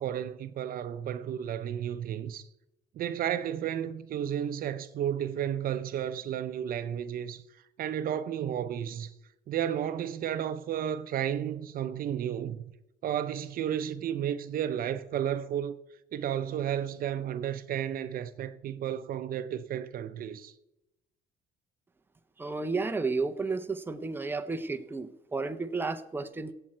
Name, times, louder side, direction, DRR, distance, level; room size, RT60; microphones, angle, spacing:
voice 1, 0.0-2.5 3.0-7.4 7.8-9.1 9.5-12.6 13.0-15.8 16.1-20.5, right 10 dB, 60° right, 0.7 m, -32 dB
voice 2, 22.4-26.5, right 3 dB, 10° right, 0.8 m, -32 dB
16.0 x 7.7 x 4.4 m
cardioid pair, 110°, 17 cm